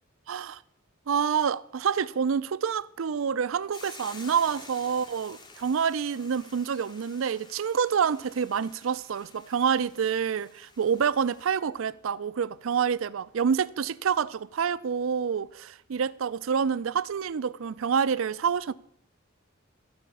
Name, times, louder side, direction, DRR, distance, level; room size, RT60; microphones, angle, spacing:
voice 1, 0.3-0.6 1.1-18.7, right 7 dB, 75° right, 0.4 m, -27 dB
Hiss / Boiling, 3.7-11.6, left 3 dB, 20° left, 1.1 m, -50 dB
14.0 x 5.0 x 8.4 m
head